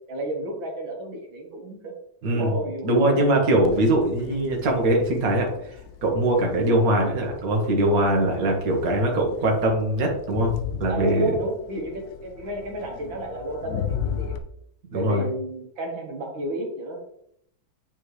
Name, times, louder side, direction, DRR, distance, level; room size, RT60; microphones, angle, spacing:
voice 1, 0.1-2.0 2.2-3.5 10.9-14.4 14.9-17.0, right 1 dB, 90° right, 0 dB, 2.1 m, -32 dB
voice 2, 2.2-2.5 2.8-10.5 10.8-11.4 14.9-15.2, right 1 dB, 50° right, 0 dB, 1.8 m, -22 dB
Crowd, 3.6-14.4, left 8 dB, 80° left, 0.7 m, -37 dB
9.0 x 4.3 x 3.2 m, 0.74 s
omnidirectional pair, 2.1 m